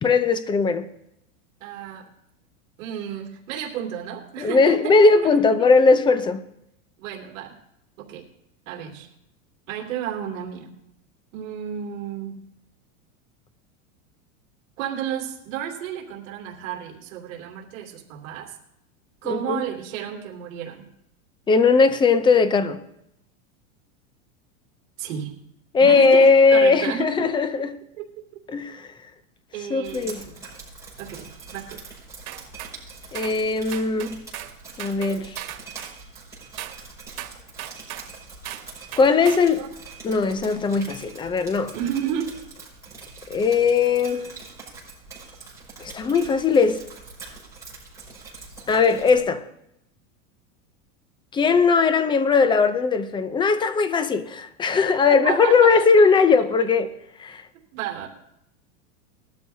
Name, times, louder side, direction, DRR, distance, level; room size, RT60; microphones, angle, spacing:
voice 1, 0.0-0.9 4.4-6.4 19.2-19.6 21.5-22.8 25.7-27.8 28.5-28.9 29.7-30.2 33.1-34.2 34.8-35.4 39.0-39.6 40.0-41.7 43.3-44.3 45.8-46.8 48.7-49.5 51.3-56.9 57.2-57.4, left 4 dB, 10° left, 0.5 m, -19 dB
voice 2, 1.6-2.1 2.8-5.4 7.0-7.5 8.0-8.3 8.7-9.1 9.7-10.7 11.3-12.4 14.8-18.5 19.2-20.9 25.0-25.3 25.8-27.3 28.0-28.1 28.3-28.4 29.5-30.3 31.0-31.2 31.5-31.8 39.6-39.7 41.7-42.4 55.1-56.1 56.6-56.7 57.7-58.1, right 9 dB, 65° right, 2.7 m, -32 dB
Drip, 29.8-49.2, right 4 dB, 5° right, 5.7 m, -43 dB
sound 1, 32.3-32.7 33.1-33.4 33.7-34.5 34.8-36.0 36.6-36.8 37.2-38.1 38.4-38.7 38.9-39.5, right 12 dB, 90° right, 1.8 m, -36 dB
20.5 x 12.5 x 2.8 m
supercardioid pair, 145°, 42 cm